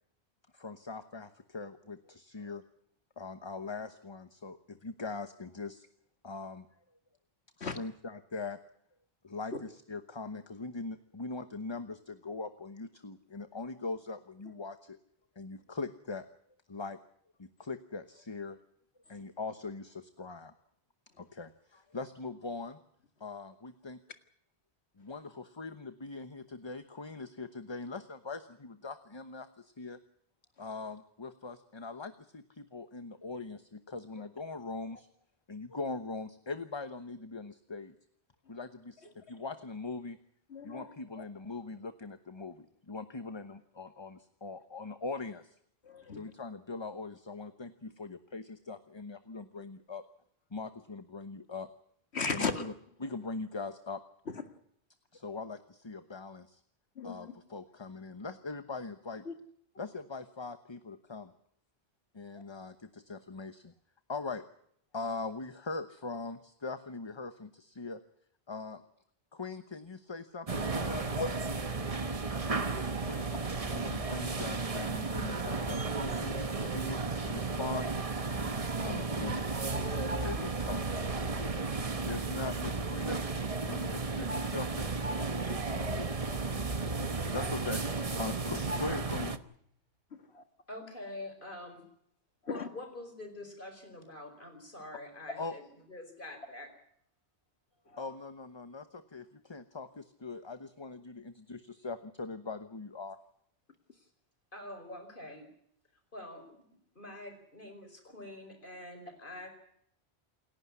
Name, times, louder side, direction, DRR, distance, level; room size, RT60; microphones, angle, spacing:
voice 1, 0.5-2.6 3.2-5.9 6.2-6.7 7.6-8.6 9.2-15.0 15.4-16.3 16.7-17.0 17.4-18.6 19.1-20.5 21.2-22.8 23.2-24.0 25.0-30.0 30.6-35.1 35.5-37.9 38.5-40.2 40.6-45.6 46.1-50.0 50.5-51.7 52.3-52.7 53.0-54.0 55.1-56.6 57.0-59.2 59.8-61.3 62.1-63.7 64.1-64.4 64.9-68.0 68.5-68.8 69.3-71.2 73.0-73.3 73.7-77.9 78.8-79.5 80.2-80.8 82.1-83.3 83.7-84.9 85.2-86.1 87.3-87.8 88.2-89.3 95.4-95.5 98.0-103.2, left 3 dB, 25° left, 10 dB, 1.0 m, -41 dB
voice 2, 40.5-41.2 45.8-46.3 52.1-52.6 54.3-54.4 57.0-57.3 59.3-59.4 71.2-71.3 80.4-80.5 90.1-90.4 92.4-92.7 97.9-98.1, left 4 dB, 75° left, 8 dB, 2.2 m, -36 dB
sound 1, 70.5-89.4, right 3 dB, 35° right, 1.2 m, -34 dB
sound 2, 79.7-82.7 85.7-89.1, right 1 dB, 85° right, 4.3 m, -43 dB
voice 3, 90.7-91.9 92.5-95.6 95.9-96.7 103.9-104.1 104.5-105.5 106.1-106.6 107.0-109.5, left 1 dB, 50° left, 6 dB, 5.2 m, -46 dB
28.0 x 11.5 x 9.7 m, 0.69 s
omnidirectional pair, 1.1 m